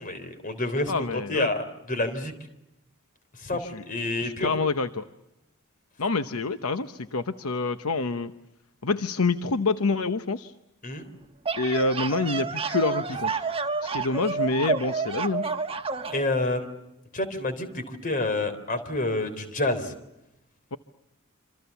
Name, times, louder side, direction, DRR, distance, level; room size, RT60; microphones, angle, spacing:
voice 1, 0.0-2.3 3.4-4.5 10.8-11.0 16.1-16.6 17.1-19.9, left 2 dB, 40° left, 10 dB, 3.7 m, -28 dB
voice 2, 0.9-1.5 3.5-3.8 4.2-5.0 6.0-8.3 8.8-10.5 11.6-13.5 13.8-15.5 20.7-20.8, left 3 dB, 75° left, 10 dB, 0.9 m, -27 dB
sound 1, 11.2-16.2, right 4 dB, 25° right, 1.3 m, -29 dB
27.0 x 26.5 x 7.1 m, 0.91 s
head